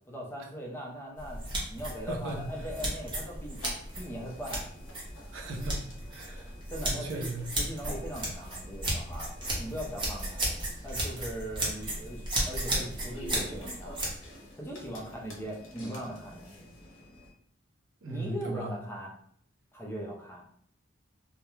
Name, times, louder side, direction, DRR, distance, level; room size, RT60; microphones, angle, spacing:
voice 1, 0.1-1.4 1.7-3.6 4.0-4.7 6.5-9.3 9.6-10.5 10.8-14.0 14.6-16.7 18.1-19.1 19.7-20.4, equal, 10° left, -2 dB, 0.5 m, -40 dB
sound 1, 1.2-14.2, right 1 dB, 25° right, 0.8 m, -35 dB
voice 2, 2.1-2.4 5.3-6.5 6.9-7.5 18.0-18.7, right 2 dB, 70° right, 1 dB, 0.5 m, -37 dB
sberbank-atm, 2.3-17.3, left 1 dB, 75° left, 0.7 m, -51 dB
2.3 x 2.1 x 3.0 m, 0.65 s
head